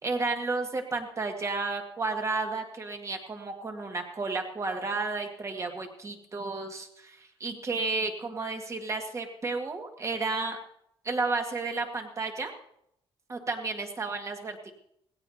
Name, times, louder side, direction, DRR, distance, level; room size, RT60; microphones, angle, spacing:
voice 1, 0.0-10.6 11.0-12.5 13.3-14.7, right 3 dB, 30° right, 3 dB, 1.9 m, -32 dB
19.0 x 16.5 x 2.8 m, 0.75 s
cardioid pair, 135°, 11 cm